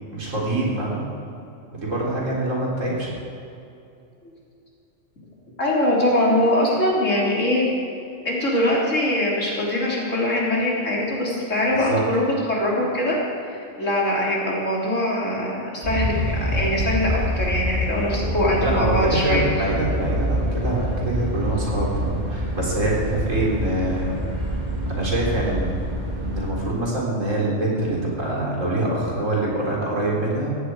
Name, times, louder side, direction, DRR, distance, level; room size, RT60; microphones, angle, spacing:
voice 1, 0.1-1.0 1.7-3.1 11.9-12.0 18.6-24.1 24.9-25.8 26.2-30.5, right 1 dB, 75° right, -4 dB, 4.0 m, -25 dB
voice 2, 5.6-7.6 8.3-12.2 12.5-13.1 13.4-16.1 16.4-19.4, left 1 dB, 70° left, -4 dB, 3.8 m, -22 dB
sound 1, 15.8-26.5, equal, 35° right, 2.3 m, -26 dB
16.0 x 16.0 x 4.8 m, 2.7 s
omnidirectional pair, 1.3 m